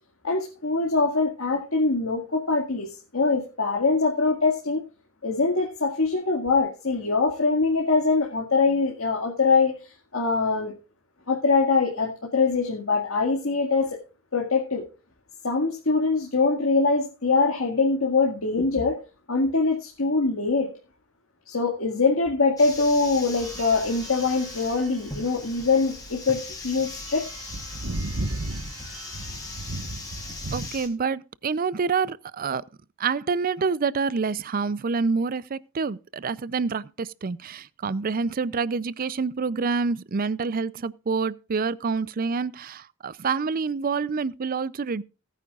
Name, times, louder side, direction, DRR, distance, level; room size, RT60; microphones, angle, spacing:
voice 1, 0.2-4.8 5.2-10.7 11.3-14.0 14.3-14.9 15.4-19.0 19.3-20.7 21.5-27.3, left 4 dB, 70° left, 2.0 m, -23 dB
sound 1, 22.6-30.9, left 3 dB, 15° left, 3.2 m, -39 dB
sound 2, 23.4-30.7, right 2 dB, 80° right, 1.3 m, -36 dB
voice 2, 30.5-32.6 33.0-45.0, right 5 dB, 40° right, 0.4 m, -27 dB
19.0 x 9.3 x 2.4 m
head